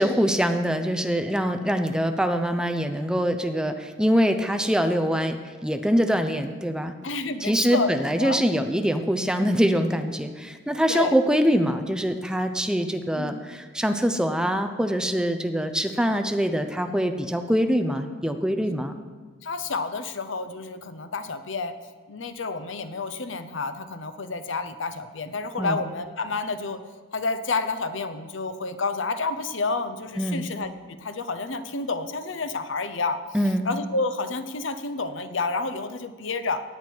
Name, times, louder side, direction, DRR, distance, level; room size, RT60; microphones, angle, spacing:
voice 1, 0.0-7.0 7.4-18.9 25.6-25.8 30.2-30.4 33.3-33.7, equal, 5° right, 7 dB, 0.6 m, -24 dB
voice 2, 7.0-8.4 10.9-11.2 13.1-13.4 19.4-21.7 22.1-26.8 27.1-33.2 33.6-36.6, left 3 dB, 70° left, 10 dB, 0.8 m, -29 dB
17.0 x 8.9 x 4.6 m, 1.4 s
head